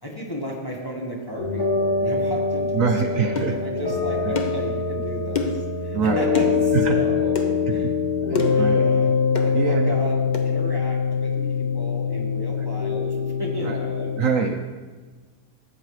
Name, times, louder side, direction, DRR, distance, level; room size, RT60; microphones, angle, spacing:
voice 1, 0.0-7.9 8.5-9.1 9.4-10.2 10.4-14.4, equal, 15° left, -2 dB, 1.4 m, -34 dB
sound 1, 1.4-14.1, left 5 dB, 55° left, 3.8 m, -23 dB
voice 2, 2.7-3.5 4.3-4.4 5.9-6.3 6.7-7.0 8.3-8.9 9.5-9.9 13.6-13.8 14.2-14.7, right 6 dB, 70° right, 5 dB, 0.9 m, -24 dB
sound 2, 3.4-3.5 4.4-4.6 5.4-5.7 6.3-6.6 7.4-7.5 8.4-8.7 9.4-9.5 10.3-10.5, left 3 dB, 40° left, 0.7 m, -27 dB
13.5 x 8.3 x 3.2 m, 1.4 s
omnidirectional pair, 1.7 m